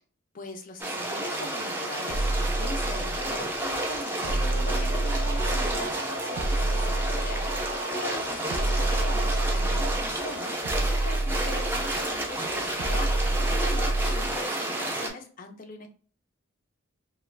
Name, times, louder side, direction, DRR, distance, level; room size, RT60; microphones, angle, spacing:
voice 1, 0.3-15.9, left 2 dB, 40° left, 5 dB, 0.5 m, -41 dB
sound 1, 0.8-15.1, right 1 dB, 10° right, 0.5 m, -31 dB
sound 2, 2.1-3.4 4.2-5.9 6.4-7.8 8.5-10.1 10.6-12.0 12.8-14.4, right 2 dB, 75° right, 0.5 m, -28 dB
sound 3, 4.3-13.7, right 1 dB, 70° left, 0.8 m, -40 dB
2.4 x 2.3 x 3.2 m, 0.41 s
head